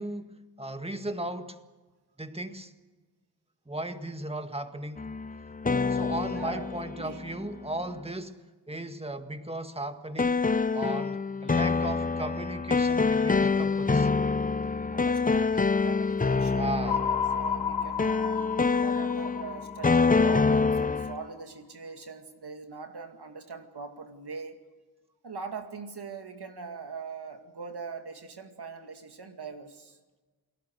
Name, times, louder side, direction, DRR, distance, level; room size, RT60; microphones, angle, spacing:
voice 1, 0.0-1.6 2.2-2.7 3.7-5.1 5.9-8.4 8.7-10.4 10.7-14.1 16.5-17.0, right 1 dB, 15° right, 1.8 m, -36 dB
sound 1, 5.0-7.9 10.2-21.3, left 4 dB, 20° left, 0.6 m, -26 dB
voice 2, 6.3-6.7 7.0-7.3 8.7-8.9 14.9-18.5 18.8-24.6 25.2-30.0, right 5 dB, 75° right, 2.3 m, -42 dB
sound 2, 16.9-21.1, left 7 dB, 85° left, 1.0 m, -32 dB
29.0 x 19.5 x 6.5 m
wide cardioid pair, 80°, 40 cm